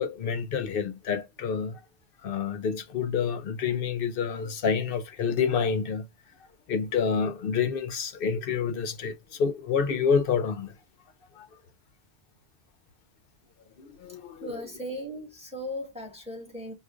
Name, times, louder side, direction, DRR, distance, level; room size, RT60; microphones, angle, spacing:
voice 1, 0.0-1.8 2.2-6.1 6.7-10.7 11.4-11.5 13.8-14.7, left 6 dB, 65° left, 0.7 m, -28 dB
voice 2, 14.4-16.7, equal, 5° right, 1.5 m, -37 dB
4.8 x 2.4 x 2.4 m
omnidirectional pair, 1.1 m